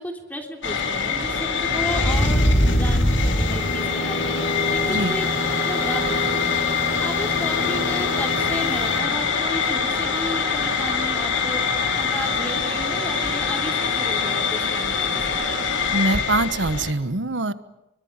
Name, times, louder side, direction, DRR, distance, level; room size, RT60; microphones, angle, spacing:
voice 1, 0.0-4.4 4.7-5.2 5.5-15.4, left 1 dB, 10° left, 3 dB, 3.4 m, -33 dB
sound 1, 0.6-16.9, left 4 dB, 80° left, 3.9 m, -23 dB
sound 2, 2.1-9.0, left 1 dB, 40° left, 6.0 m, -30 dB
voice 2, 4.9-5.2 15.9-17.5, right 2 dB, 75° right, 14 dB, 1.2 m, -23 dB
26.0 x 23.5 x 8.8 m, 0.95 s
head